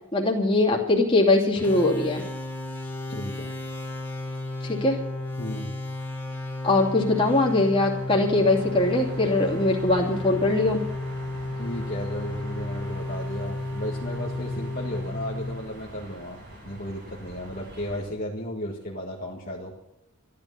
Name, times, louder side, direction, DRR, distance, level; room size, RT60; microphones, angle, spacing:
voice 1, 0.1-2.2 4.6-5.0 6.6-10.8, left 2 dB, 25° left, -1 dB, 2.8 m, -21 dB
sound 1, 1.5-16.1, left 2 dB, 10° left, 3.1 m, -33 dB
voice 2, 3.1-3.5 5.4-5.7 11.6-19.7, equal, 40° left, -3 dB, 1.8 m, -34 dB
sound 2, 7.6-18.0, right 1 dB, 50° right, 7.9 m, -45 dB
14.0 x 11.5 x 7.0 m, 0.84 s
head